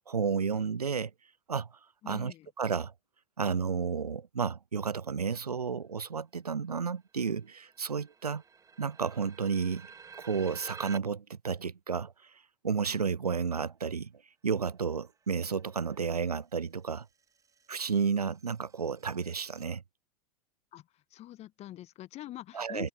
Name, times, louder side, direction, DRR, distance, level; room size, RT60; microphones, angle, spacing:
voice 1, 0.1-1.1 1.5-1.7 2.1-2.9 3.4-8.4 8.8-9.9 10.2-12.3 12.6-14.1 14.4-17.1 17.7-19.8 22.5-22.9, right 6 dB, 85° right, 0.6 m, -32 dB
voice 2, 2.0-2.5 20.7-20.9 21.1-22.9, left 14 dB, 35° left, 1.4 m, -44 dB
sound 1, 7.0-7.1 7.2-11.0 15.2-16.2 17.0-19.7, right 6 dB, 15° right, 1.7 m, -52 dB
open air
figure-of-eight pair, 90°, 19 cm